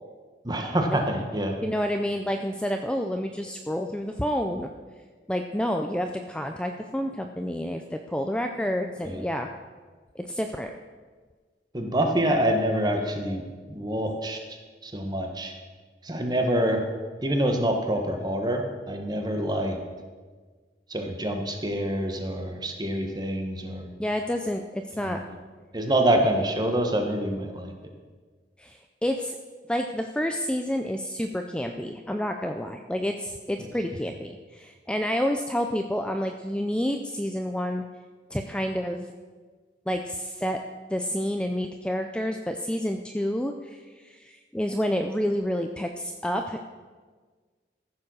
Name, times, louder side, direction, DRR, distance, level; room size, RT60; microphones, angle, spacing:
voice 1, 0.4-1.6 9.0-9.2 11.7-13.4 13.7-14.6 14.8-15.5 16.0-16.8 17.2-19.8 20.9-23.9 25.0-25.2 25.7-27.7, right 1 dB, 25° right, 4 dB, 1.3 m, -26 dB
voice 2, 1.6-4.7 5.3-9.5 10.2-10.7 24.0-25.2 28.6-29.4 29.7-37.8 38.3-39.0 39.9-40.6 40.9-46.6, equal, 5° left, 5 dB, 0.4 m, -29 dB
14.5 x 7.1 x 6.3 m, 1.5 s
head